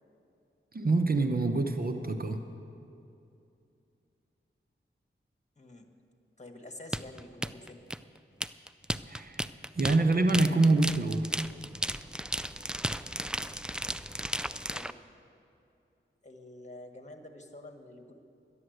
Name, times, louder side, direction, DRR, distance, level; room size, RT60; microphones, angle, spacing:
voice 1, 0.7-2.4 9.1-9.5 9.8-11.3, right 2 dB, 45° right, 6 dB, 0.8 m, -26 dB
voice 2, 5.6-5.9 6.4-7.8 14.7-14.9 16.2-18.1, left 2 dB, 35° left, 4 dB, 1.5 m, -48 dB
sound 1, 6.9-14.9, right 1 dB, 5° right, 0.3 m, -34 dB
11.5 x 11.0 x 7.9 m, 2.7 s
wide cardioid pair, 60°, 21 cm